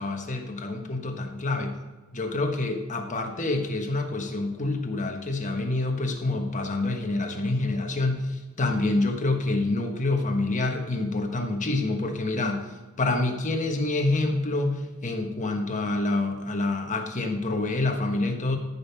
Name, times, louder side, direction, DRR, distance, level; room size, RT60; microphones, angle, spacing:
voice 1, 0.0-1.8 2.1-12.6 13.0-18.6, left 2 dB, 35° left, 4 dB, 1.3 m, -27 dB
14.0 x 5.4 x 5.8 m, 1.3 s
head